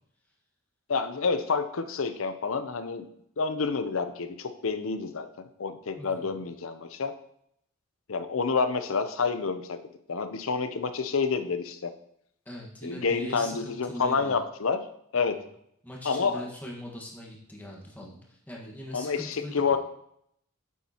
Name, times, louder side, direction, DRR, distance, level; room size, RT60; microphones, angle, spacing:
voice 1, 0.9-3.1 3.4-7.1 8.1-9.8 10.1-11.9 12.8-14.8 15.1-15.4 16.0-16.5 18.9-19.8, left 5 dB, 70° left, 10 dB, 0.7 m, -28 dB
voice 2, 5.9-6.4 12.4-14.4 15.1-15.5 15.8-19.8, equal, 10° left, -3 dB, 1.5 m, -41 dB
9.3 x 7.4 x 2.9 m, 0.73 s
head